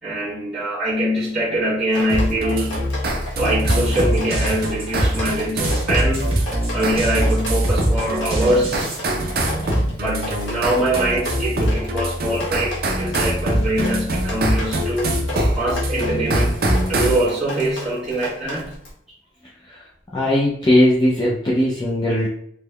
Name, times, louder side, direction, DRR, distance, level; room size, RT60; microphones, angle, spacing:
voice 1, 0.0-2.9 3.4-8.9 9.8-15.2 15.5-16.6 16.9-18.7, right 1 dB, 5° right, -13 dB, 1.4 m, -23 dB
Drip, 1.9-18.9, left 2 dB, 85° left, 1.1 m, -34 dB
sound 1, 2.1-17.3, right 1 dB, 55° right, 0.5 m, -23 dB
sound 2, 3.6-9.0, right 1 dB, 30° right, 1.0 m, -25 dB
voice 2, 20.1-22.3, left 1 dB, 25° left, -6 dB, 0.4 m, -18 dB
3.5 x 3.0 x 2.2 m, 0.67 s
head